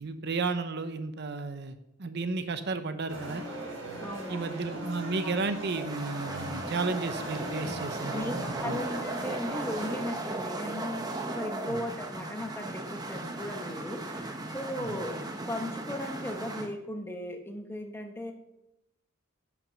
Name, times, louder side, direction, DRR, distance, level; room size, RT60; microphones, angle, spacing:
voice 1, 0.0-3.4 4.3-8.8 11.7-11.8 14.8-15.0, right 3 dB, 50° right, 9 dB, 0.7 m, -33 dB
sound 1, 3.1-10.0, right 1 dB, 70° right, 4.6 m, -39 dB
voice 2, 4.0-4.9 5.2-5.4 8.1-18.3, left 1 dB, 10° left, 4 dB, 1.0 m, -37 dB
sound 2, 5.6-16.7, right 2 dB, 20° right, 0.9 m, -37 dB
10.5 x 6.0 x 6.8 m, 0.89 s
head